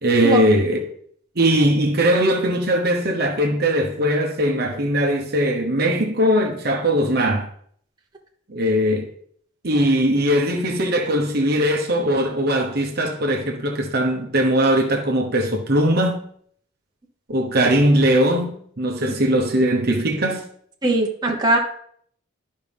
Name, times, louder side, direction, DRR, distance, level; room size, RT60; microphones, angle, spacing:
voice 1, 0.0-0.9 1.4-7.5 8.5-9.1 9.6-16.2 17.3-20.4, right 1 dB, 50° right, 1.1 m, -20 dB
voice 2, 20.8-21.6, right 1 dB, 20° right, 1.1 m, -20 dB
11.5 x 5.4 x 3.5 m
head